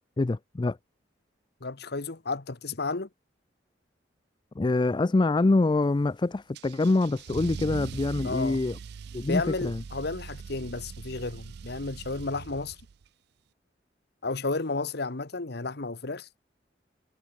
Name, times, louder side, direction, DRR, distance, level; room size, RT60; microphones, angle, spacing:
voice 1, 0.2-0.8 4.6-8.8 9.1-9.8, left 2 dB, 25° left, 0.4 m, -25 dB
voice 2, 1.6-3.1 8.2-8.6 9.3-12.8 14.2-16.3, left 3 dB, 60° left, 1.2 m, -32 dB
Car / Engine starting / Accelerating revving vroom, 6.6-13.0, right 5 dB, 60° right, 0.4 m, -41 dB
head